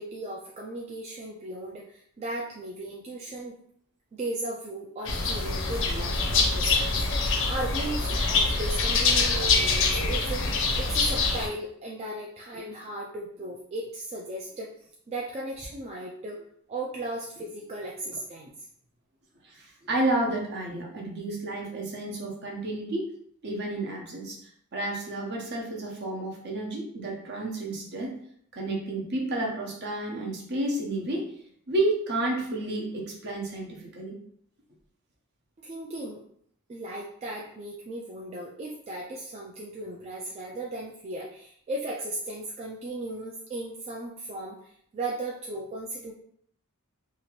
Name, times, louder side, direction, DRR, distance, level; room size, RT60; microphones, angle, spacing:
voice 1, 0.0-3.5 4.1-14.7 15.1-18.5 35.6-36.2 36.7-46.1, right 1 dB, 30° right, -2 dB, 0.3 m, -36 dB
sound 1, 5.1-11.5, left 3 dB, 60° left, 0.5 m, -25 dB
voice 2, 19.4-23.1 23.4-24.4 24.7-28.2 28.5-31.3 31.7-34.2, right 2 dB, 50° right, -1 dB, 0.8 m, -31 dB
2.8 x 2.4 x 3.0 m, 0.65 s
head